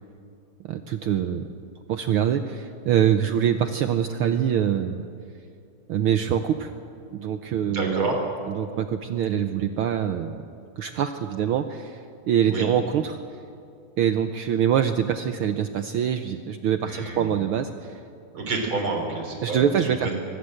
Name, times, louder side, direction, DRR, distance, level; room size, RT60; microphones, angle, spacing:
voice 1, 0.6-1.5 1.9-5.0 5.9-6.7 7.1-8.1 8.5-10.4 10.8-13.2 14.0-18.0 19.4-20.2, right 9 dB, 85° right, 8 dB, 1.1 m, -24 dB
voice 2, 7.6-8.1 12.5-12.7 16.9-17.3 18.3-20.2, right 3 dB, 45° right, 2 dB, 4.4 m, -29 dB
23.5 x 20.5 x 7.9 m, 2.5 s
omnidirectional pair, 3.4 m